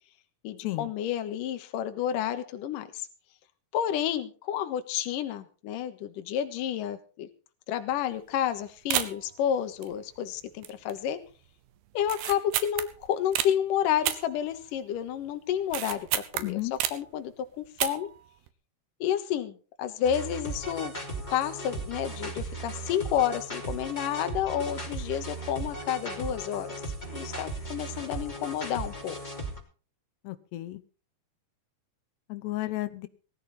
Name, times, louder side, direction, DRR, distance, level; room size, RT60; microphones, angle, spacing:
voice 1, 0.4-3.1 3.7-7.3 7.7-11.2 11.9-18.1 19.0-20.9 21.3-26.7 27.0-29.2, left 10 dB, 65° left, 8 dB, 2.6 m, -30 dB
sound 1, 7.9-8.2 8.4-8.5 8.9-9.3 9.8-10.3 10.6-11.0 11.3-11.4 12.0-13.5 14.0-15.0 15.3-17.2 17.7-18.2 18.5-18.6, right 13 dB, 80° right, 3.0 m, -31 dB
voice 2, 16.4-16.7 30.2-30.8 32.3-33.1, left 18 dB, 90° left, 12 dB, 3.1 m, -33 dB
sound 2, 20.0-29.6, right 2 dB, 10° left, 2.8 m, -37 dB
18.5 x 13.5 x 4.2 m, 0.37 s
omnidirectional pair, 4.7 m